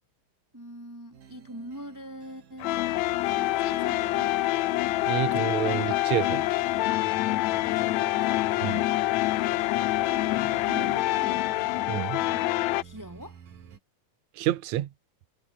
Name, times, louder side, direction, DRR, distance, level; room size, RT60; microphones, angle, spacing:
voice 1, 0.5-2.8 3.3-4.5 7.4-9.0 9.9-11.5 12.2-13.4, equal, 5° right, 3.5 m, -43 dB
sound 1, 1.1-13.8, right 7 dB, 80° right, 4.6 m, -50 dB
sound 2, 2.6-12.8, left 17 dB, 75° left, 1.7 m, -26 dB
voice 2, 5.1-6.5 8.6-8.8 11.9-12.2 14.4-14.9, right 13 dB, 65° right, 2.3 m, -28 dB
omnidirectional pair, 3.8 m